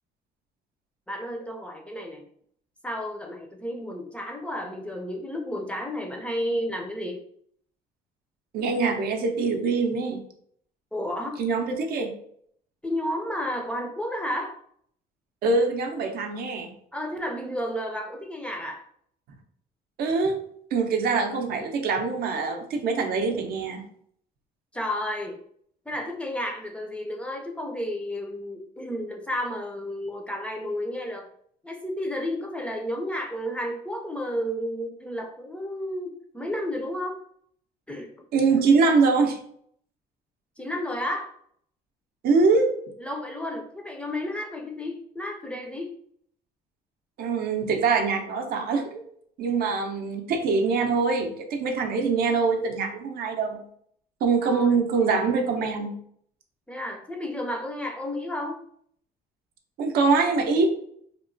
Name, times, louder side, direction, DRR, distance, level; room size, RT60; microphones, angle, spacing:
voice 1, 1.1-2.2 2.8-7.2 10.9-11.4 12.8-14.6 16.9-18.8 24.7-25.4 25.9-31.3 31.6-37.2 37.9-38.1 40.6-41.3 43.0-45.9 54.4-54.8 56.7-58.6, left 1 dB, 5° left, 1 dB, 0.4 m, -32 dB
voice 2, 8.5-10.2 11.4-12.1 15.4-16.7 20.0-20.3 20.7-23.8 38.3-39.4 42.2-42.7 47.2-49.0 49.4-53.6 54.2-56.0 59.8-60.7, right 4 dB, 65° right, 4 dB, 0.5 m, -23 dB
2.9 x 2.1 x 2.5 m, 0.65 s
cardioid pair, 110°, 17 cm